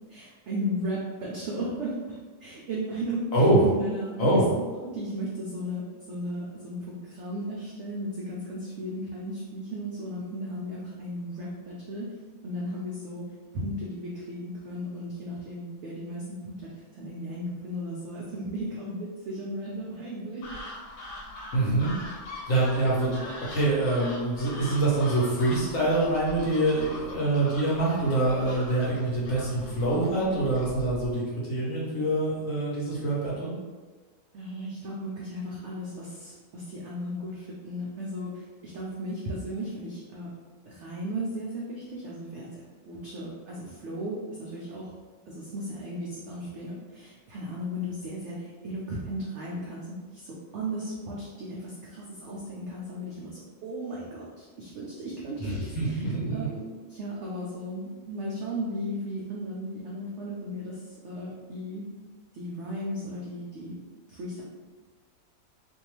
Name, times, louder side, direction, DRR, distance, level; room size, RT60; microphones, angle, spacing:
voice 1, 0.1-12.1 12.4-13.2 13.5-20.5 34.3-40.3 40.7-44.9 45.3-55.6 55.9-56.0 56.3-61.9 62.3-63.7 64.1-64.4, equal, 80° right, -5 dB, 0.6 m, -35 dB
voice 2, 3.3-3.6 4.2-4.5 21.5-21.9 22.5-33.5 55.4-56.5, right 2 dB, 65° left, -5 dB, 0.9 m, -25 dB
sound 1, 20.4-31.1, left 1 dB, 85° left, 1.3 m, -42 dB
2.6 x 2.3 x 3.0 m, 1.4 s
omnidirectional pair, 1.7 m